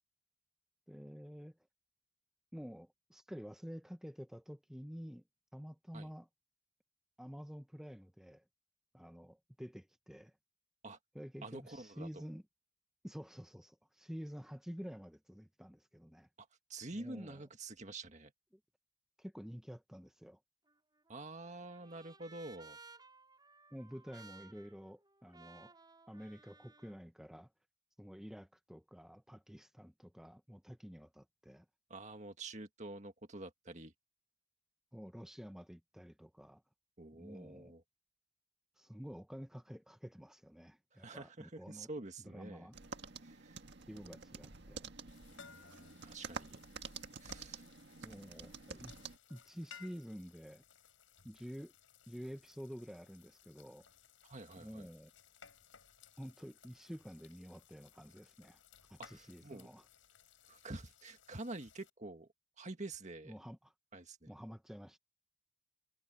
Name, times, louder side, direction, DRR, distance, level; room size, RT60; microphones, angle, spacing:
voice 1, 0.9-1.6 2.5-5.2 5.5-6.3 7.2-8.4 8.9-10.3 11.1-12.4 13.0-16.3 16.9-17.4 18.5-18.6 19.2-20.4 23.7-25.7 26.1-27.5 28.0-31.7 34.9-36.6 37.1-37.7 38.8-41.9 42.2-42.8 43.9-44.9 48.0-48.9 49.3-50.6 51.2-51.7 52.1-53.9 54.6-55.1 56.2-58.6 58.9-59.8 63.2-63.7 64.3-65.0, equal, ahead, 0.9 m, -49 dB
voice 2, 11.4-12.2 16.4-18.3 21.1-22.8 31.9-33.9 37.0-37.8 40.9-42.7 43.2-43.6 45.3-46.6 47.2-47.6 54.2-54.9 59.0-59.7 60.5-62.3 62.6-63.4 63.9-64.3, right 2 dB, 35° right, 1.9 m, -48 dB
Trumpet, 20.7-27.0, right 4 dB, 20° right, 5.3 m, -59 dB
sound 1, 42.7-49.2, right 5 dB, 60° right, 1.9 m, -49 dB
sound 2, 45.1-61.9, left 7 dB, 75° left, 5.5 m, -61 dB
head